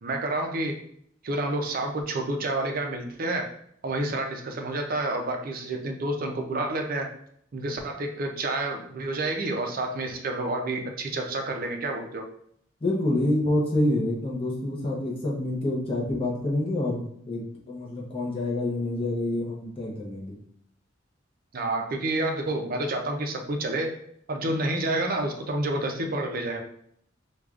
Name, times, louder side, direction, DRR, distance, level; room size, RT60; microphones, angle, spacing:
voice 1, 0.0-0.7 1.2-3.5 3.8-7.1 7.5-12.2 21.5-23.9 24.3-26.6, right 2 dB, 45° right, 3 dB, 0.5 m, -29 dB
voice 2, 12.8-17.0 17.3-17.4 17.7-20.4, left 1 dB, 30° left, -3 dB, 0.7 m, -27 dB
4.7 x 2.3 x 2.4 m, 0.67 s
head